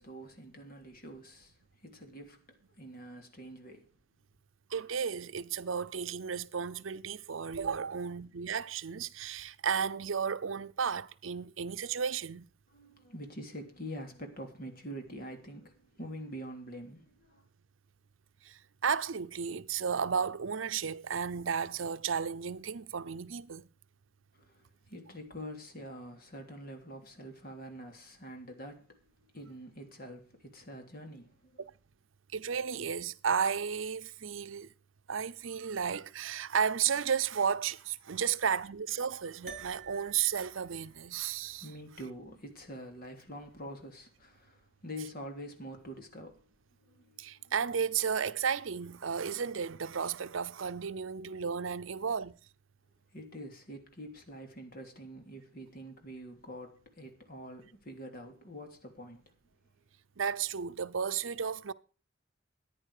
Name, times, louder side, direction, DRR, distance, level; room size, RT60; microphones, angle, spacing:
voice 1, 0.0-3.9 12.7-17.4 24.3-29.0 29.3-31.6 41.6-46.5 46.8-47.5 53.1-59.2, equal, 50° left, 3.2 m, -46 dB
voice 2, 4.7-12.5 18.4-23.7 32.3-34.7 35.1-41.7 47.2-52.3 60.2-61.7, right 7 dB, 75° right, 0.7 m, -33 dB
sound 1, 39.5-44.0, right 6 dB, 40° right, 3.3 m, -53 dB
14.5 x 10.0 x 4.9 m
head